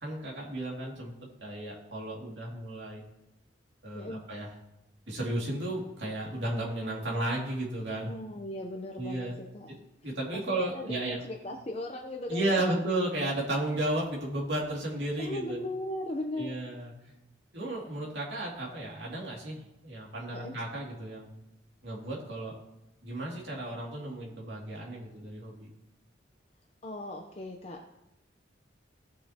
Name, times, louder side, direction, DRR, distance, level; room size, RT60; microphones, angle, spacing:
voice 1, 0.0-1.1 1.4-3.0 3.8-4.5 5.1-8.1 8.9-9.4 10.0-11.2 12.3-15.6 16.3-16.9 17.5-21.3 21.8-22.5 23.0-25.7, right 1 dB, 70° right, -3 dB, 2.5 m, -33 dB
voice 2, 8.0-9.8 10.0-12.7 15.2-16.6 20.3-20.5 26.8-27.9, left 1 dB, 35° left, 2 dB, 0.7 m, -38 dB
17.0 x 6.5 x 2.9 m, 0.90 s
head